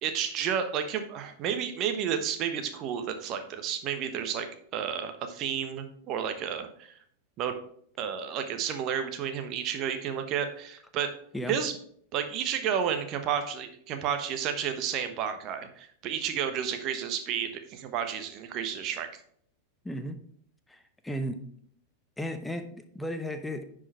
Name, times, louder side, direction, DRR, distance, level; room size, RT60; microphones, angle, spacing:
voice 1, 0.0-4.5 4.7-6.9 7.4-7.5 8.0-11.1 11.5-11.7 12.1-19.1, right 8 dB, 35° right, 8 dB, 1.1 m, -31 dB
voice 2, 19.8-20.2 20.7-21.4 22.2-23.6, equal, 5° left, 8 dB, 0.9 m, -35 dB
10.0 x 5.0 x 4.4 m, 0.63 s
figure-of-eight pair, 90°, 0 cm